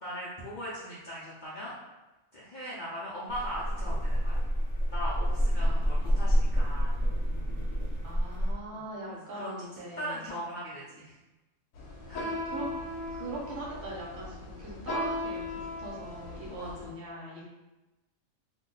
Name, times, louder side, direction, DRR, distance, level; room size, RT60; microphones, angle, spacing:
voice 1, 0.0-1.7 2.3-4.4 4.9-7.0 8.7-11.2 12.1-12.3 16.6-17.0, equal, 50° left, -9 dB, 0.6 m, -39 dB
sound 1, 3.3-8.5, equal, 35° right, 0.6 m, -28 dB
voice 2, 5.6-5.9 8.0-10.3 12.1-12.7 13.1-17.4, right 2 dB, 60° right, -5 dB, 1.0 m, -41 dB
sound 2, 11.7-16.9, left 1 dB, 85° left, 1.1 m, -37 dB
2.6 x 2.3 x 3.7 m, 1.0 s
omnidirectional pair, 1.4 m